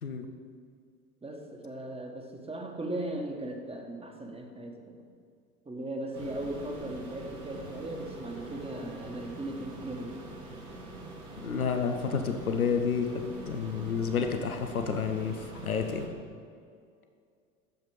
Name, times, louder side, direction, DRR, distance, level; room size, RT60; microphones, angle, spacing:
voice 1, 1.2-5.0 5.6-10.2, right 1 dB, 15° right, 3 dB, 1.4 m, -38 dB
sound 1, 6.1-16.1, right 2 dB, 80° right, 1.6 m, -45 dB
voice 2, 11.4-16.1, left 6 dB, 90° left, 5 dB, 0.8 m, -30 dB
10.5 x 7.5 x 5.0 m, 2.3 s
figure-of-eight pair, 70°, 42 cm